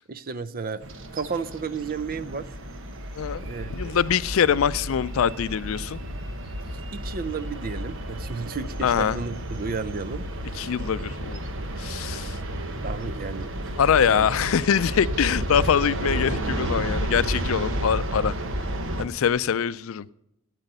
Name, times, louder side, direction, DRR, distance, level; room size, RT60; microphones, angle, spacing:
voice 1, 0.1-0.8 1.1-2.5 3.4-4.0 6.9-10.2 12.8-13.5 14.1-14.3, right 5 dB, 45° right, 15 dB, 0.6 m, -32 dB
sound 1, 0.8-19.0, right 1 dB, 65° right, 1.2 m, -32 dB
voice 2, 3.1-6.0 8.8-9.2 10.5-11.4 11.8-12.4 13.8-18.3 19.0-20.1, left 7 dB, 70° left, 17 dB, 0.4 m, -24 dB
13.0 x 9.0 x 6.6 m, 0.79 s
head